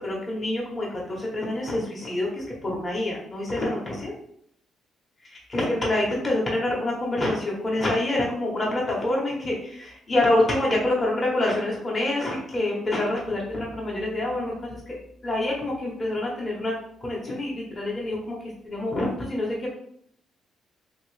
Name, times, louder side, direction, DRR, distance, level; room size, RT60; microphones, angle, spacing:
voice 1, 0.0-4.1 5.2-16.8 17.0-18.4 18.6-19.7, left 1 dB, 30° left, -3 dB, 1.0 m, -26 dB
2.8 x 2.7 x 3.2 m, 0.68 s
cardioid pair, 90°, 0 cm